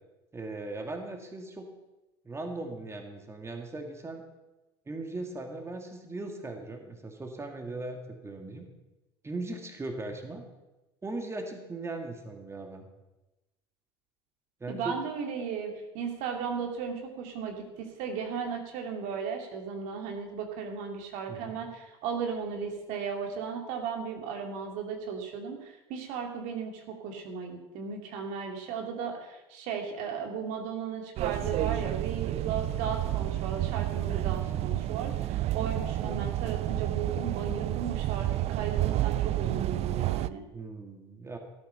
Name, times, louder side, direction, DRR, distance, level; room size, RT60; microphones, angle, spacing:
voice 1, 0.3-1.7 2.2-4.2 4.9-8.7 9.2-10.4 11.0-12.9 14.6-15.0 21.3-21.6 34.4-34.6 35.9-36.2 40.5-41.4, right 2 dB, 20° right, 4 dB, 2.2 m, -38 dB
voice 2, 14.7-40.4, right 6 dB, 65° right, 3 dB, 2.7 m, -36 dB
sound 1, 31.2-40.3, right 15 dB, 50° right, 0.5 m, -30 dB
16.0 x 8.8 x 5.7 m, 1.0 s
hypercardioid pair, 75°, 14 cm